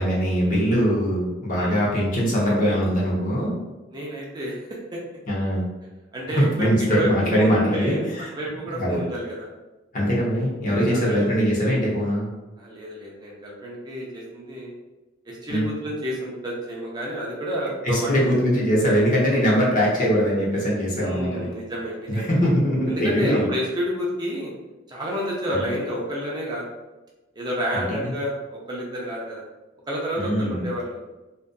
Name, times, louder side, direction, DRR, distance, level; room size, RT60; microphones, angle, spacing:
voice 1, 0.0-3.5 5.3-5.6 6.3-8.3 8.7-9.0 9.9-12.3 15.5-15.7 17.8-21.5 22.1-23.5 25.5-25.6 27.7-28.1 30.2-30.6, equal, 45° left, -5 dB, 0.7 m, -22 dB
voice 2, 3.9-4.6 4.9-5.0 6.1-8.0 8.3-9.5 10.6-11.2 12.6-14.7 15.3-18.4 21.0-22.3 22.9-24.5 24.9-26.7 27.4-29.4 29.9-31.0, equal, 20° right, -4 dB, 0.4 m, -30 dB
2.6 x 2.3 x 2.2 m, 1.1 s
head